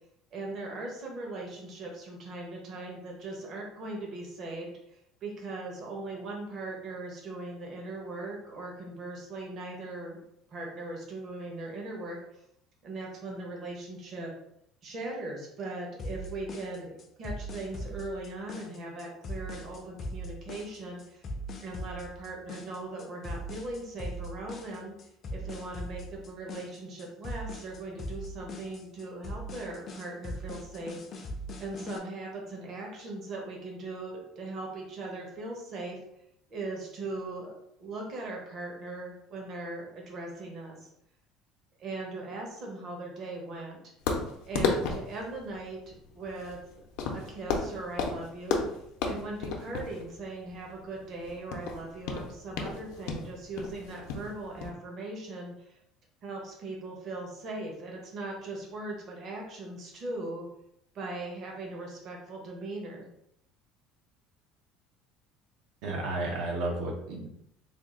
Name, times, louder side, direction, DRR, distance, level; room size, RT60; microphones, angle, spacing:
voice 1, 0.3-10.2 10.5-12.4 12.8-14.3 14.8-16.9 17.2-21.2 21.6-24.9 25.3-31.2 31.6-36.0 36.5-40.9 41.8-43.8 44.5-46.8 47.1-48.6 49.0-55.8 56.2-60.5 60.9-63.1, right 2 dB, 35° right, -1 dB, 0.8 m, -39 dB
sound 1, 16.0-32.0, equal, 30° left, 0.5 m, -40 dB
sound 2, 44.1-54.7, left 4 dB, 75° left, 0.6 m, -33 dB
voice 2, 65.8-67.3, right 2 dB, 65° right, 0 dB, 0.7 m, -32 dB
3.5 x 2.3 x 3.7 m, 0.76 s
cardioid pair, 180°, 0 cm